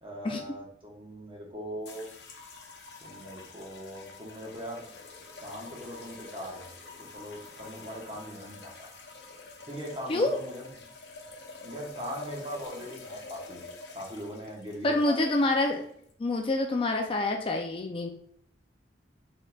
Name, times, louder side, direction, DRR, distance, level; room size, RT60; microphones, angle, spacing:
voice 1, 0.0-2.1 3.0-4.8 5.4-6.7 7.0-8.9 9.6-10.7 11.6-13.6 13.9-15.2, equal, 30° right, -2 dB, 1.2 m, -40 dB
sound 1, 1.8-16.1, left 3 dB, 65° left, 0.7 m, -47 dB
voice 2, 14.8-15.9 16.2-18.1, left 2 dB, 30° left, 3 dB, 0.4 m, -27 dB
4.2 x 3.8 x 2.3 m, 0.68 s
head